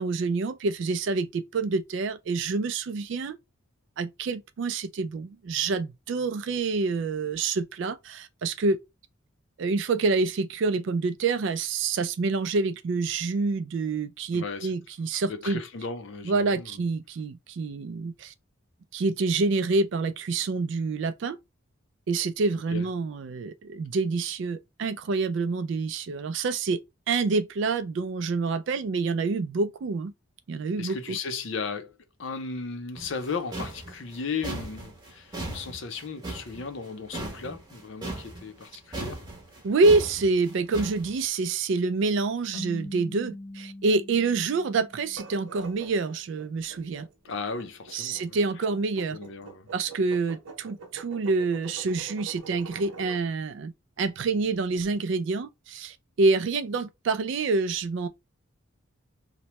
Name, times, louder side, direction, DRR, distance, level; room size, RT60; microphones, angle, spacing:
voice 1, 0.0-3.4 4.0-8.8 9.6-15.6 16.2-18.3 18.9-21.4 22.1-26.8 27.1-30.1 30.5-31.2 39.6-47.1 47.9-49.2 49.7-58.1, right 3 dB, 60° right, 0.3 m, -27 dB
voice 2, 14.3-14.7 15.3-16.8 22.7-22.9 30.8-31.9 32.2-39.2 47.2-48.4 49.1-49.7, left 4 dB, 60° left, 0.5 m, -35 dB
sound 1, 33.0-38.7 38.9-41.1, right 2 dB, 20° right, 0.9 m, -37 dB
sound 2, 42.5-45.7, left 1 dB, 15° left, 0.6 m, -42 dB
sound 3, 45.0-53.2, right 4 dB, 90° right, 0.7 m, -45 dB
3.0 x 2.1 x 2.8 m
head